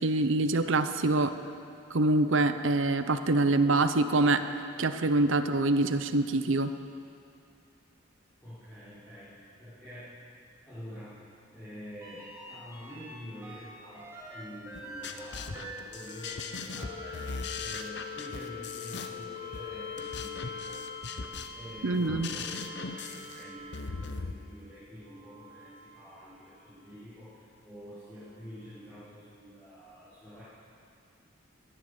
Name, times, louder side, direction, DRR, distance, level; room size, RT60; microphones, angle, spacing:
voice 1, 0.0-1.3 1.9-4.4 4.8-6.7 21.8-22.3, right 2 dB, 70° right, 9 dB, 0.7 m, -25 dB
voice 2, 8.4-10.1 10.6-11.2 11.5-20.8 21.5-30.4, equal, 10° left, -16 dB, 5.1 m, -47 dB
sound 1, 12.0-13.1 13.4-24.2 25.0-26.6 28.3-28.4, left 4 dB, 15° right, 3.2 m, -43 dB
sound 2, 14.7-24.3, left 4 dB, 55° left, 0.7 m, -40 dB
17.0 x 11.5 x 6.7 m, 2.4 s
head